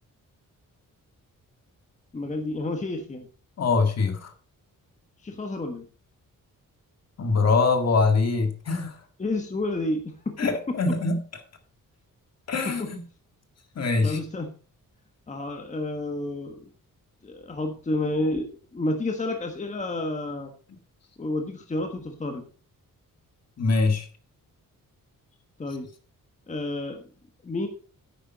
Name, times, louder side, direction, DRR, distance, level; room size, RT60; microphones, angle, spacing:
voice 1, 2.1-3.3 5.2-5.9 9.2-10.4 10.7-10.8 12.7-12.9 14.0-14.5 15.3-16.7 17.2-20.5 21.2-22.4 25.6-25.9 26.5-27.0 27.4-27.7, left 2 dB, 20° left, 4 dB, 1.3 m, -30 dB
voice 2, 3.6-4.3 7.2-9.0 10.4-11.2 12.5-13.0 13.8-14.2 23.6-24.1, left 4 dB, 50° left, 6 dB, 1.9 m, -23 dB
10.0 x 8.9 x 4.0 m, 0.38 s
wide cardioid pair, 170°, 34 cm